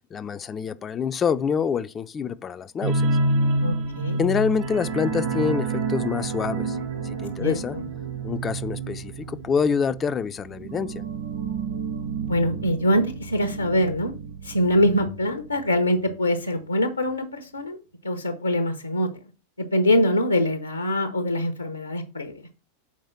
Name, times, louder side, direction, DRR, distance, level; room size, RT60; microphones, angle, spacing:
voice 1, 0.1-3.1 4.2-6.8 7.0-7.8 8.2-11.0, left 6 dB, 20° left, 0.5 m, -26 dB
sound 1, 2.8-16.1 16.4-16.6 16.9-17.0, right 3 dB, 45° right, 1.4 m, -29 dB
voice 2, 3.6-4.2 7.4-7.8 12.3-14.1 14.4-17.8 18.0-19.1 19.6-22.6, left 1 dB, 80° left, 0.8 m, -24 dB
7.3 x 4.7 x 4.4 m
figure-of-eight pair, 90°, 0 cm